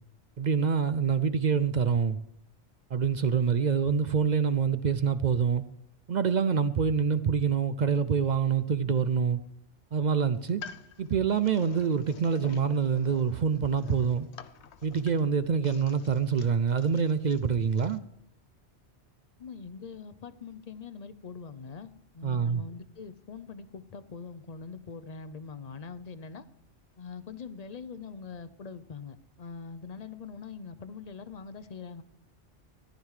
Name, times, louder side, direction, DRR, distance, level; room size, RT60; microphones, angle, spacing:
voice 1, 0.4-2.2 2.9-5.6 6.1-9.4 9.9-10.6 11.0-14.3 14.8-18.0 22.2-22.6, right 6 dB, 55° right, 0.5 m, -26 dB
sound 1, 10.4-18.0, left 7 dB, 70° left, 1.0 m, -49 dB
voice 2, 19.4-26.5 27.0-32.0, left 5 dB, 40° left, 0.7 m, -43 dB
14.5 x 11.0 x 4.8 m
omnidirectional pair, 1.2 m